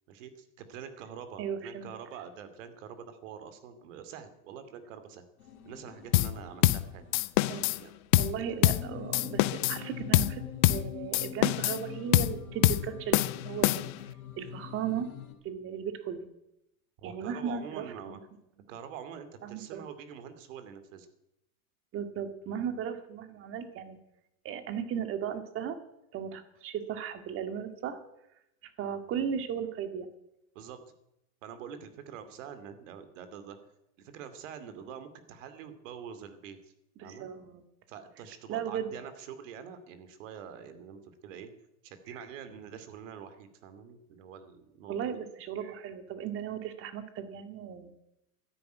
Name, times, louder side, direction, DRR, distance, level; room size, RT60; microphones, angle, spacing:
voice 1, 0.1-5.2 5.7-7.0 7.4-7.9 8.4-8.5 17.0-18.2 18.7-21.1 30.5-30.8 31.4-33.6 34.0-36.7 37.0-37.3 37.9-41.5 41.8-44.9, right 8 dB, 55° right, 10 dB, 2.7 m, -45 dB
voice 2, 1.4-1.9 7.5-7.7 8.2-13.9 14.4-15.1 15.4-16.3 17.0-17.9 19.4-19.8 21.9-24.0 24.4-25.8 26.1-28.0 28.8-30.1 37.0-37.6 38.5-38.9 42.1-42.2 44.9-48.0, right 8 dB, 30° right, 9 dB, 2.1 m, -36 dB
sound 1, 5.4-7.3 7.5-7.6 8.3-15.3, left 8 dB, 75° left, 3.2 m, -43 dB
sound 2, 6.1-6.4 6.6-6.9 7.1-7.8 8.1-8.4 8.6-8.9 9.1-9.8 10.1-10.4 10.6-10.9 11.1-11.8 12.1-12.4 12.6-12.9 13.1-14.0, left 18 dB, 35° left, 0.5 m, -25 dB
13.0 x 11.0 x 9.4 m, 0.84 s
hypercardioid pair, 135°, 44 cm